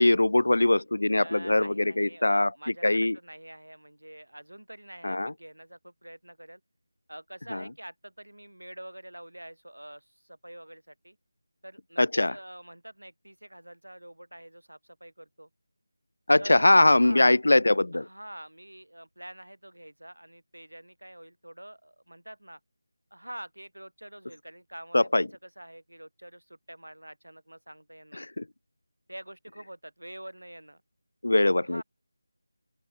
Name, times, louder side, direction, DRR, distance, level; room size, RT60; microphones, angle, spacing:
voice 1, 0.0-3.2 5.0-5.3 7.5-7.6 12.0-12.4 16.3-18.1 24.9-25.3 28.1-28.4 31.2-31.8, left 2 dB, 65° left, 0.8 m, -22 dB
voice 2, 1.1-6.6 7.1-11.2 11.6-15.5 16.4-17.3 17.9-22.6 23.1-28.3 29.1-30.8 31.6-31.8, right 1 dB, 85° right, 6.1 m, -46 dB
open air
figure-of-eight pair, 165°, 0 cm